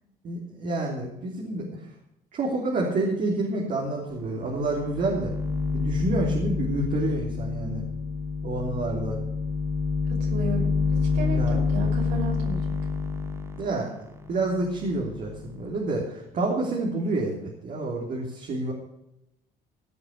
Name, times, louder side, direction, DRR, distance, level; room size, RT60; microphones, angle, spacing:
voice 1, 0.2-1.7 2.3-5.3 5.7-7.8 8.4-9.2 11.3-11.6 13.6-14.0 14.3-18.7, right 2 dB, 50° right, -2 dB, 3.2 m, -28 dB
sound 1, 4.1-4.2 4.5-15.6, left 4 dB, 15° right, 1.7 m, -28 dB
voice 2, 10.1-10.8 11.1-12.7, right 1 dB, 80° right, -1 dB, 5.8 m, -33 dB
17.0 x 6.7 x 6.6 m, 0.84 s
cardioid pair, 110°, 17 cm